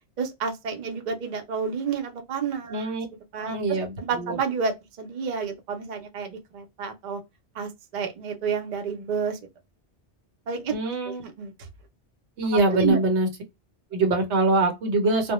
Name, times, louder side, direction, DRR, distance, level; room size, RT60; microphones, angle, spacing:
voice 1, 0.2-2.9 3.3-4.7 5.0-7.2 7.5-9.4 10.5-10.8 11.1-11.5 12.8-13.0, right 5 dB, 50° right, 0.6 m, -30 dB
voice 2, 2.7-3.1 3.4-4.4 10.7-11.2 12.4-13.3 13.9-15.3, right 2 dB, 85° right, 1.0 m, -24 dB
2.1 x 2.1 x 2.8 m
omnidirectional pair, 1.1 m